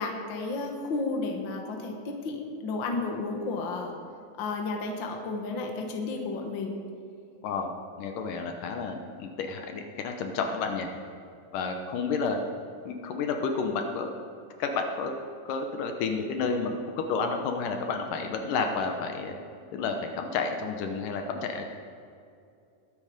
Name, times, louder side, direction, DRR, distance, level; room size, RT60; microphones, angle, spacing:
voice 1, 0.0-3.9 4.4-6.8, left 3 dB, 50° left, 2 dB, 1.6 m, -32 dB
voice 2, 8.0-10.9 11.5-12.4 12.9-14.1 14.6-15.1 15.5-19.3 19.7-21.7, left 4 dB, 75° left, 4 dB, 2.4 m, -30 dB
21.0 x 9.1 x 5.1 m, 2.5 s
omnidirectional pair, 4.1 m